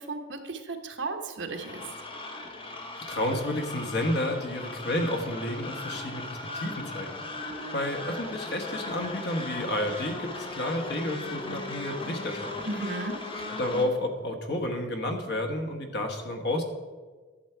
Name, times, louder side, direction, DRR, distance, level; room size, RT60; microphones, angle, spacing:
voice 1, 0.0-1.8 12.7-13.2, right 3 dB, 70° right, 5 dB, 1.0 m, -35 dB
sound 1, 1.5-13.9, left 2 dB, 30° left, 1.0 m, -38 dB
voice 2, 3.0-7.2 7.7-12.5 13.3-16.6, left 1 dB, 60° left, 4 dB, 1.3 m, -31 dB
11.5 x 7.2 x 4.5 m, 1.4 s
head